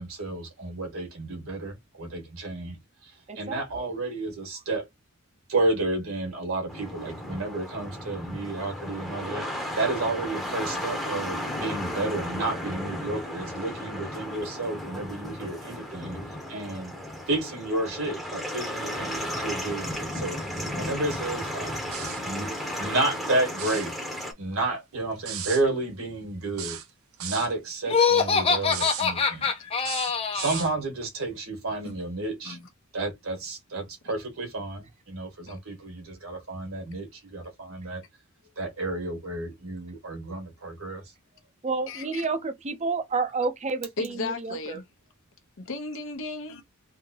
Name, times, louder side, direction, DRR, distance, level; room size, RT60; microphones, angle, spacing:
voice 1, 0.0-2.8 3.4-4.9 5.5-9.4 9.8-16.2 16.5-17.0 17.3-21.7 22.2-22.5 22.8-23.9 24.4-26.8 27.2-29.5 30.3-32.6 32.9-38.0 38.6-41.0, right 2 dB, 70° right, 1.6 m, -31 dB
voice 2, 3.3-3.9 41.6-44.8, right 4 dB, 35° right, 0.6 m, -30 dB
sound 1, 6.7-24.3, equal, ahead, 0.9 m, -34 dB
sound 2, 21.9-22.3 23.5-23.9 25.3-25.6 26.6-27.5 28.7-29.1 29.8-30.7, right 10 dB, 90° right, 0.8 m, -35 dB
Laughter, 27.9-30.7, left 5 dB, 25° left, 0.6 m, -24 dB
voice 3, 41.9-42.2 44.0-44.8 45.6-46.6, left 3 dB, 65° left, 0.9 m, -35 dB
3.5 x 2.7 x 2.9 m
head